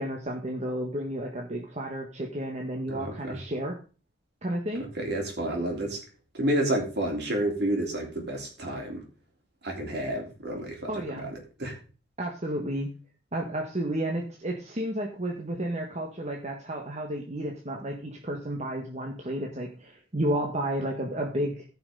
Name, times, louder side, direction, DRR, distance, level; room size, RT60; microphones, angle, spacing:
voice 1, 0.0-3.8 4.4-4.9 10.9-11.3 12.2-12.9 13.3-21.6, right 1 dB, 40° right, 1 dB, 1.4 m, -32 dB
voice 2, 2.9-3.4 5.0-6.0 6.3-9.0 9.6-11.8, right 1 dB, 60° right, 1 dB, 3.5 m, -30 dB
15.0 x 5.9 x 3.9 m, 0.35 s
head